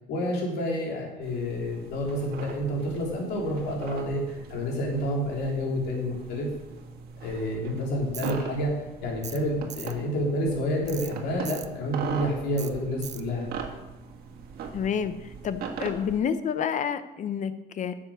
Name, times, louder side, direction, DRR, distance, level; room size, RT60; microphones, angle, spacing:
voice 1, 0.1-6.5 7.2-8.7 9.0-13.5, equal, 80° left, -1 dB, 3.5 m, -29 dB
sound 1, 1.2-16.2, right 6 dB, 65° right, 1.7 m, -40 dB
Tools, 8.1-8.3 9.2-9.4 9.7-9.9 10.9-11.1 11.4-11.7 12.6-12.7 13.0-13.2, right 9 dB, 45° right, 0.7 m, -39 dB
voice 2, 14.7-17.9, left 7 dB, 45° left, 12 dB, 0.8 m, -29 dB
9.9 x 7.2 x 6.5 m, 1.0 s
cardioid pair, 110°, 17 cm